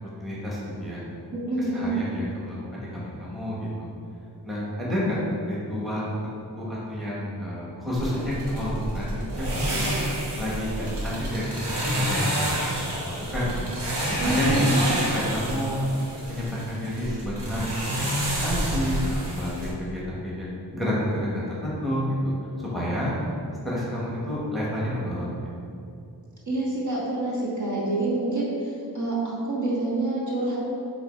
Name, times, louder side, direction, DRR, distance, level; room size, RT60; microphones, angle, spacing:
voice 1, 0.2-1.0 1.7-3.9 4.4-5.2 5.5-6.1 6.4-9.1 9.5-10.0 10.4-11.5 11.8-12.7 13.0-13.6 14.1-14.7 15.1-15.8 16.3-20.5 20.7-22.3 22.7-23.1 23.6-25.3, equal, ahead, -7 dB, 1.3 m, -29 dB
voice 2, 1.3-1.9 14.2-14.8 26.5-30.6, right 2 dB, 45° right, -6 dB, 1.3 m, -27 dB
sound 1, 8.0-19.7, right 1 dB, 75° right, 1.3 m, -29 dB
7.1 x 3.2 x 4.3 m, 2.6 s
wide cardioid pair, 120°, 41 cm